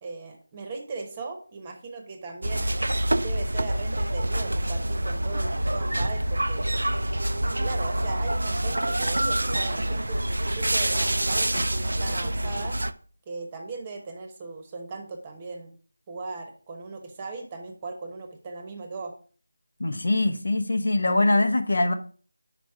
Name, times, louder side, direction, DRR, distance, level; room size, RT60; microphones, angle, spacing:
voice 1, 0.0-2.7 3.2-6.7 7.6-12.8 13.3-15.7 16.1-19.1, right 3 dB, 20° right, 4 dB, 0.9 m, -38 dB
sound 1, 2.4-12.9, right 1 dB, 85° right, 0.5 m, -26 dB
voice 2, 19.8-21.9, left 2 dB, 70° left, 7 dB, 0.9 m, -23 dB
5.1 x 5.0 x 4.7 m, 0.40 s
figure-of-eight pair, 170°, 0 cm